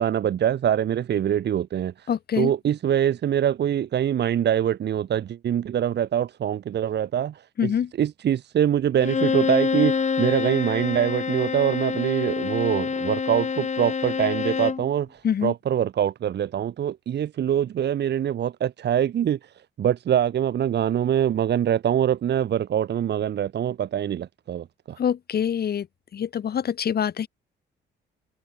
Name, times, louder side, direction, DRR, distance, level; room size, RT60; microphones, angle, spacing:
voice 1, 0.0-2.1 2.3-7.7 8.0-19.5 19.8-25.0, right 10 dB, 60° right, 1.3 m, -24 dB
voice 2, 2.1-2.5 7.6-7.9 15.2-15.5 25.0-25.9 26.1-27.3, left 8 dB, 50° left, 1.6 m, -25 dB
Bowed string instrument, 9.0-14.9, left 6 dB, 35° left, 2.0 m, -26 dB
cardioid pair, 90°, 20 cm